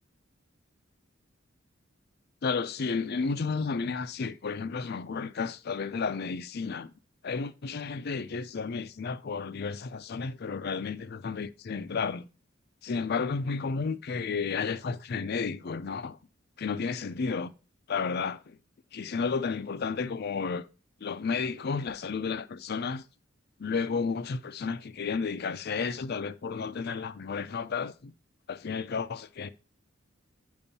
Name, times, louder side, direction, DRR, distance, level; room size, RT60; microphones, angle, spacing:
voice 1, 2.4-6.9 7.2-12.3 12.8-16.2 16.6-17.5 17.9-18.6 18.9-20.7 21.0-23.0 23.6-28.1 28.5-29.5, left 5 dB, 50° left, 0.5 m, -32 dB
8.9 x 5.3 x 2.7 m
head